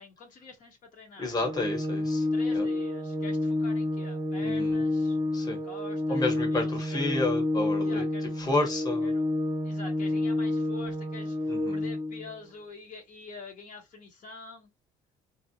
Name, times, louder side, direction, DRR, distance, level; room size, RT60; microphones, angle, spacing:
voice 1, 0.0-1.4 2.3-5.2 5.6-7.0 7.8-8.4 9.0-9.2 9.6-14.7, left 4 dB, 50° left, 1.0 m, -46 dB
voice 2, 1.2-2.3 2.5-2.6 4.4-4.8 5.3-5.6 6.1-8.0 8.4-9.1 11.5-11.8, left 2 dB, 20° left, 1.1 m, -30 dB
Organ, 1.4-12.3, left 2 dB, 35° right, 0.7 m, -29 dB
2.7 x 2.3 x 2.7 m
cardioid pair, 110°, 17 cm